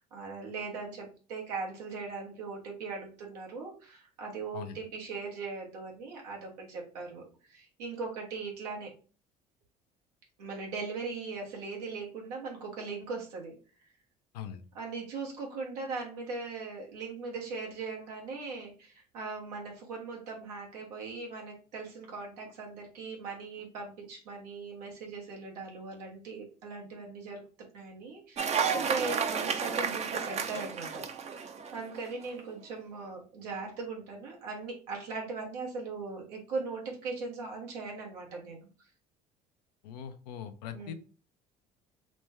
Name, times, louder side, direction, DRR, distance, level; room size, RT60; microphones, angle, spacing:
voice 1, 0.0-8.9 10.4-13.9 14.7-27.4 27.7-31.1 31.7-38.7 40.7-40.9, right 4 dB, 90° right, -1 dB, 1.1 m, -39 dB
Cheering / Applause, 28.4-32.1, right 6 dB, 35° right, 0.5 m, -32 dB
voice 2, 39.8-40.9, left 8 dB, 90° left, 9 dB, 0.4 m, -41 dB
3.1 x 2.2 x 3.3 m, 0.37 s
hypercardioid pair, 70°, 20 cm